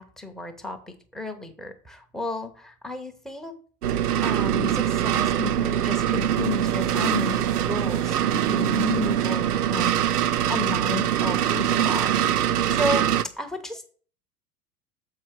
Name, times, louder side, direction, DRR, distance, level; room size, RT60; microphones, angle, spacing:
voice 1, 0.0-3.5 4.2-12.4 12.7-13.1 13.4-13.9, left 3 dB, ahead, 5 dB, 0.5 m, -33 dB
sound 1, 3.8-13.2, right 10 dB, 75° right, 0.5 m, -23 dB
7.2 x 4.7 x 4.7 m, 0.43 s
figure-of-eight pair, 85°, 47 cm